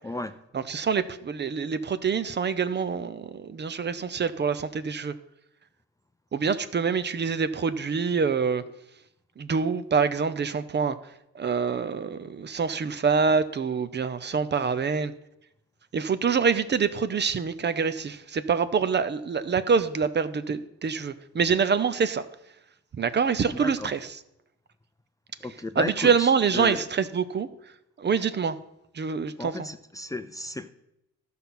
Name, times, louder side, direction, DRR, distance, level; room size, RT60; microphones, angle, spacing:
voice 1, 0.0-0.3 23.5-23.9 25.4-26.8 29.4-30.7, left 1 dB, 10° left, 9 dB, 0.5 m, -33 dB
voice 2, 0.5-5.1 6.3-8.6 9.4-11.0 11.3-15.1 15.9-22.2 23.0-24.2 25.8-27.5 28.0-28.6 28.9-29.7, right 5 dB, 35° right, 13 dB, 0.7 m, -26 dB
12.5 x 5.6 x 5.9 m, 0.83 s
cardioid pair, 90°, 30 cm